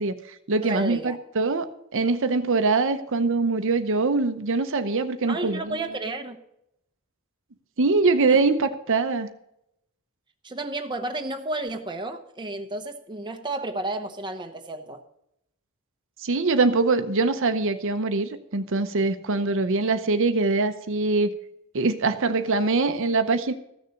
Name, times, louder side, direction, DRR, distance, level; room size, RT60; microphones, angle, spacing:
voice 1, 0.0-5.8 7.8-9.3 16.2-21.3 21.7-23.5, right 3 dB, 60° right, 0.8 m, -23 dB
voice 2, 0.6-1.2 5.3-6.4 8.3-8.4 10.4-15.0, right 2 dB, 20° right, 0.9 m, -32 dB
14.5 x 6.8 x 6.4 m
head